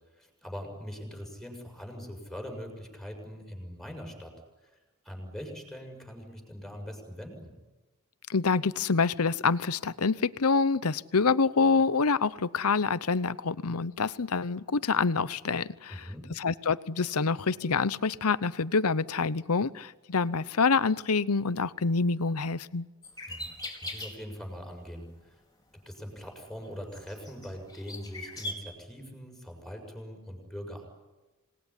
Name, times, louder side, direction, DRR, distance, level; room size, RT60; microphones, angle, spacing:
voice 1, 0.2-4.3 4.6-4.7 5.0-7.5 15.9-16.3 23.3-25.4 25.8-30.8, equal, ahead, 3 dB, 6.6 m, -42 dB
voice 2, 8.3-16.0 16.4-22.9, left 4 dB, 80° left, 17 dB, 0.8 m, -26 dB
sound 1, 23.0-24.4 25.0-25.2 25.8-28.6, left 1 dB, 15° left, 4.9 m, -41 dB
27.0 x 20.0 x 10.0 m, 1.1 s
head